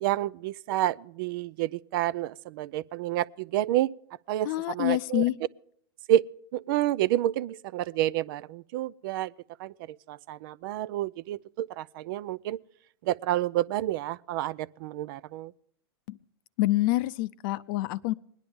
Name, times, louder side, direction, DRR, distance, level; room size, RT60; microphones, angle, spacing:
voice 1, 0.0-3.9 4.3-5.2 6.1-6.3 6.5-9.3 9.6-12.6 13.0-15.5, right 14 dB, 55° right, 0.4 m, -29 dB
voice 2, 4.4-5.4 16.1-16.2 16.6-18.1, left 17 dB, 55° left, 0.5 m, -27 dB
20.5 x 10.5 x 3.5 m
hypercardioid pair, 120°, 14 cm